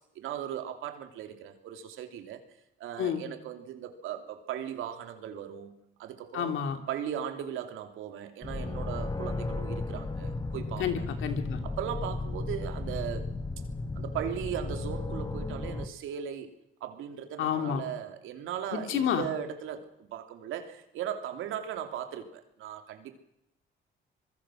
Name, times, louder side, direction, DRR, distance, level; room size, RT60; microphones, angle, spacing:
voice 1, 0.1-2.4 2.8-6.6 6.9-11.1 11.6-13.3 13.9-16.5 16.8-23.2, right 9 dB, 90° right, 6 dB, 3.1 m, -38 dB
voice 2, 6.3-6.8 10.8-11.6 17.4-17.8 18.7-19.2, left 8 dB, 80° left, 6 dB, 3.2 m, -29 dB
sound 1, 8.4-15.9, left 3 dB, 20° left, 1.7 m, -34 dB
26.0 x 22.0 x 6.4 m, 0.81 s
cardioid pair, 90°, 20 cm